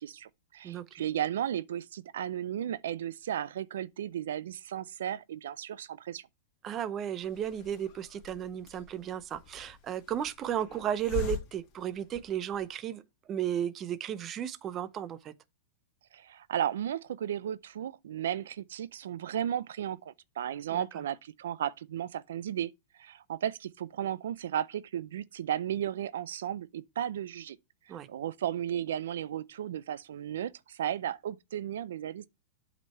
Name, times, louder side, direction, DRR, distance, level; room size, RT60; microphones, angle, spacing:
voice 1, 0.0-6.3 16.1-22.7 23.0-27.6 28.1-32.3, right 10 dB, 80° right, 0.4 m, -34 dB
voice 2, 6.6-13.0 13.3-15.3 20.7-20.8 27.9-28.1, right 10 dB, 30° right, 0.7 m, -34 dB
Hiss, 7.2-12.7, left 7 dB, 35° left, 2.5 m, -43 dB
8.5 x 5.2 x 4.3 m
hypercardioid pair, 135°, 0 cm